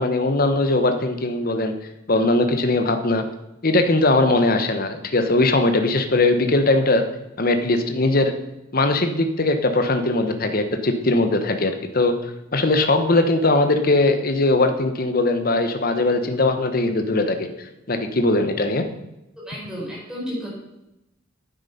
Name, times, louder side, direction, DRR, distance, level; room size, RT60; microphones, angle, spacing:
voice 1, 0.0-1.7 2.1-3.2 3.6-7.0 7.4-8.3 8.7-12.1 12.5-17.5 17.9-18.9, left 2 dB, 45° left, 7 dB, 1.0 m, -20 dB
voice 2, 19.4-20.5, equal, 5° right, -5 dB, 4.4 m, -32 dB
9.4 x 8.8 x 5.7 m, 0.92 s
head